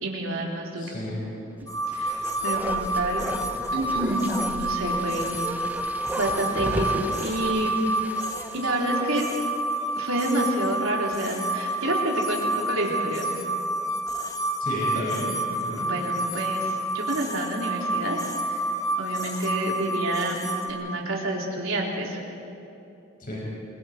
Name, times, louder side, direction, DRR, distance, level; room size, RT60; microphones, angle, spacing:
voice 1, 0.0-1.0 1.9-3.3 3.7-5.4 6.2-7.7 8.5-9.3 10.0-13.4 15.7-18.7 19.0-22.2, right 1 dB, 80° right, -2 dB, 4.0 m, -29 dB
voice 2, 0.8-1.2 14.6-15.9 23.2-23.4, equal, 45° left, -5 dB, 5.9 m, -32 dB
sound 1, 1.7-20.7, right 1 dB, 15° left, 1.5 m, -29 dB
Bark, 1.8-9.4 9.7-9.8, right 1 dB, 10° right, 0.9 m, -35 dB
28.0 x 22.5 x 4.6 m, 2.8 s
head